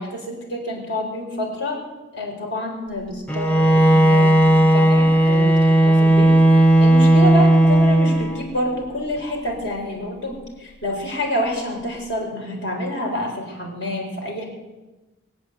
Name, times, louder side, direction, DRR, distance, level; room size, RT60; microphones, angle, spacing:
voice 1, 0.0-1.8 2.1-14.4, left 1 dB, 65° left, -1 dB, 4.3 m, -28 dB
Bowed string instrument, 3.3-8.6, right 1 dB, 10° left, 0.8 m, -15 dB
21.5 x 8.2 x 7.9 m, 1.1 s
head